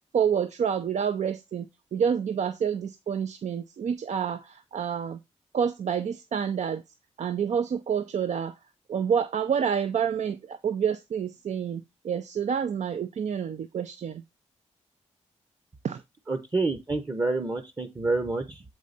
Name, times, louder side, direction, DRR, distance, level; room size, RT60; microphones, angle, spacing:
voice 1, 0.1-5.2 5.5-6.8 7.2-8.6 8.9-14.2 15.8-16.0, right 7 dB, 70° right, 0.6 m, -28 dB
voice 2, 16.3-18.6, right 3 dB, 30° right, 0.9 m, -28 dB
7.6 x 4.7 x 4.0 m
cardioid pair, 80°, 12 cm